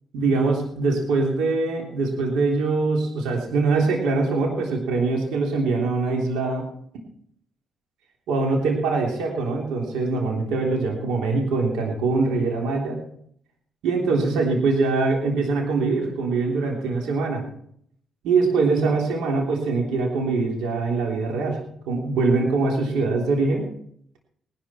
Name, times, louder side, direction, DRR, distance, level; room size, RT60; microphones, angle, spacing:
voice 1, 0.1-6.6 8.3-13.0 13.8-17.4 18.2-21.6 21.9-23.6, right 3 dB, 90° right, 0 dB, 3.3 m, -23 dB
18.5 x 12.5 x 4.4 m, 0.67 s
cardioid pair, 90°, 0 cm